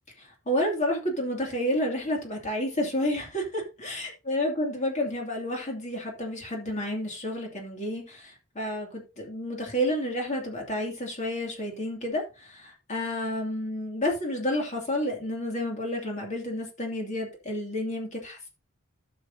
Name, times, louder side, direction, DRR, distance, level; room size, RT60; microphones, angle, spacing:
voice 1, 0.2-18.5, left 1 dB, 35° left, 2.6 m, -30 dB
15.0 x 6.3 x 2.8 m
head